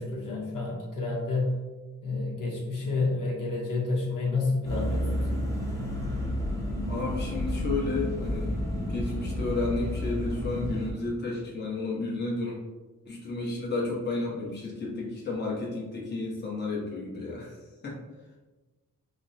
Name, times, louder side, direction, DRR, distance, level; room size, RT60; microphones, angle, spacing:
voice 1, 0.0-1.5 2.0-5.4, left 3 dB, 70° left, -3 dB, 0.8 m, -29 dB
sound 1, 4.6-10.9, left 1 dB, 10° left, 0.7 m, -30 dB
voice 2, 6.9-12.6 13.1-17.6 17.8-18.0, left 3 dB, 30° left, -5 dB, 0.9 m, -32 dB
5.0 x 2.1 x 2.6 m, 1.2 s
wide cardioid pair, 150°, 33 cm